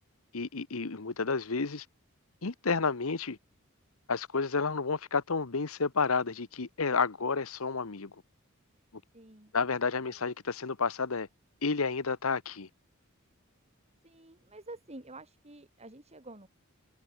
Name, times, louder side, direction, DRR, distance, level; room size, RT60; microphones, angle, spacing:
voice 1, 0.3-1.9 2.4-3.4 4.1-8.1 9.5-11.3 11.6-12.7, left 4 dB, 75° left, 1.1 m, -30 dB
voice 2, 9.1-9.5 10.0-10.2 14.0-16.5, right 2 dB, 30° right, 5.4 m, -49 dB
head